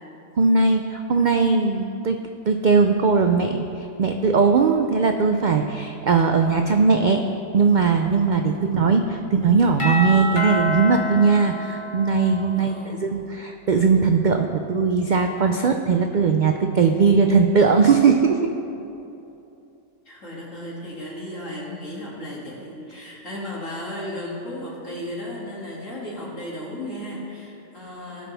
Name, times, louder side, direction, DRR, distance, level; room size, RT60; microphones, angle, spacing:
voice 1, 0.4-7.2 7.5-12.7 13.0-18.4, right 5 dB, 80° right, 4 dB, 0.4 m, -19 dB
voice 2, 8.6-9.1 12.5-13.2 20.1-28.3, left 1 dB, 70° left, -5 dB, 2.8 m, -35 dB
Doorbell, 9.8-12.6, left 1 dB, 25° left, 1.4 m, -27 dB
18.0 x 6.3 x 3.4 m, 2.8 s
omnidirectional pair, 1.4 m